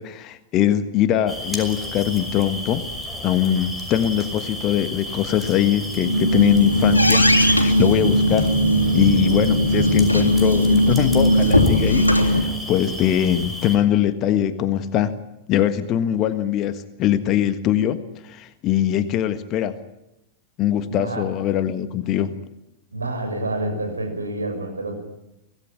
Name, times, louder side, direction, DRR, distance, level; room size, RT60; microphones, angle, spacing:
voice 1, 0.0-2.8 3.2-8.5 8.9-15.1 15.5-19.8 20.6-22.3, left 10 dB, 35° left, 11 dB, 1.5 m, -22 dB
sound 1, 1.3-13.8, equal, 5° right, 5.7 m, -33 dB
sound 2, 5.9-12.4, equal, 85° left, 3.1 m, -18 dB
voice 2, 20.8-21.3 22.9-24.9, right 2 dB, 80° right, 4 dB, 6.8 m, -28 dB
25.0 x 17.5 x 9.9 m, 0.85 s
figure-of-eight pair, 90°, 0 cm